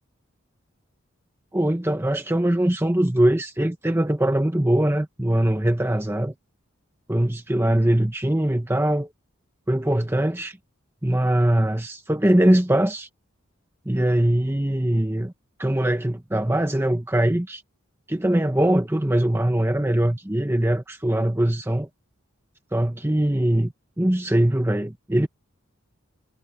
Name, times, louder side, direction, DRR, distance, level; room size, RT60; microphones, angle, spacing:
voice 1, 1.5-6.3 7.1-9.1 9.7-10.6 11.0-13.1 13.9-15.3 15.6-17.6 18.1-21.9 22.7-25.3, right 1 dB, 10° right, 0.9 m, -22 dB
head